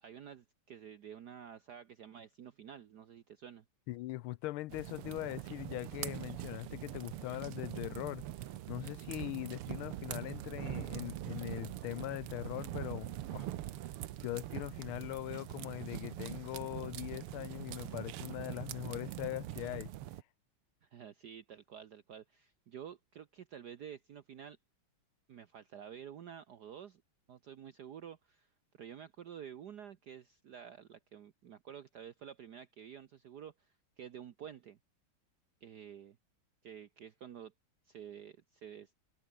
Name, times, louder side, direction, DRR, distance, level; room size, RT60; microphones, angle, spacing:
voice 1, 0.0-3.6 20.8-24.6 25.3-27.0 27.3-28.5 28.7-34.8 35.6-36.2 36.6-37.5 37.8-38.9, right 9 dB, 55° right, 1.4 m, -50 dB
voice 2, 3.9-8.2 8.7-13.5 14.2-19.9, left 17 dB, 80° left, 1.4 m, -41 dB
sound 1, 4.7-20.2, right 13 dB, 85° right, 1.9 m, -43 dB
omnidirectional pair, 2.4 m